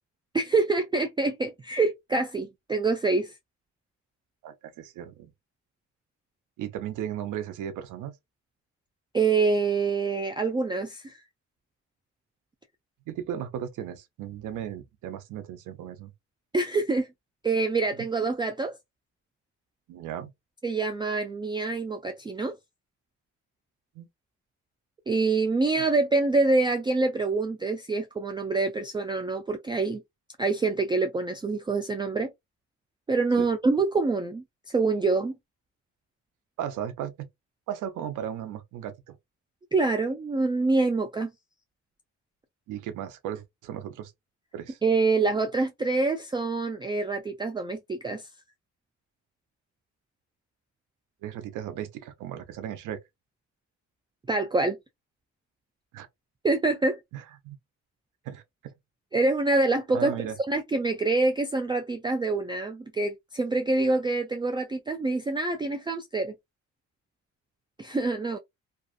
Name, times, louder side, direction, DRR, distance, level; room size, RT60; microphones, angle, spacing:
voice 1, 0.3-3.3 9.1-11.2 16.5-17.1 17.4-18.7 20.6-22.5 25.1-30.0 30.4-32.3 33.1-35.3 39.7-41.3 44.8-48.3 54.3-54.8 56.4-57.0 59.1-60.2 60.5-66.3 67.8-68.4, right 3 dB, 15° right, 0.3 m, -26 dB
voice 2, 4.4-5.3 6.6-8.1 13.1-16.1 19.9-20.3 24.0-24.1 33.4-33.5 36.6-37.3 37.7-39.2 42.7-44.1 44.5-44.8 51.2-53.0 55.9-56.1 57.1-57.6 58.2-58.7 59.9-60.4, right 10 dB, 85° right, 0.7 m, -36 dB
2.6 x 2.3 x 2.4 m
cardioid pair, 90°, 30 cm